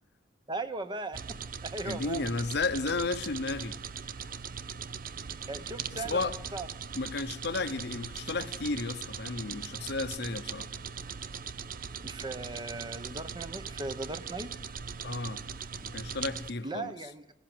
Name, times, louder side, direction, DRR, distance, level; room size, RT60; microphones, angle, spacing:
voice 1, 0.5-2.3 5.5-6.7 12.0-14.5 16.6-17.3, right 2 dB, 25° right, 0.9 m, -38 dB
sound 1, 1.1-16.5, right 6 dB, 50° right, 0.7 m, -40 dB
voice 2, 1.8-3.8 5.9-6.3 6.9-10.7 15.0-15.4 15.8-16.9, left 3 dB, 65° left, 0.9 m, -33 dB
20.0 x 16.5 x 7.9 m
head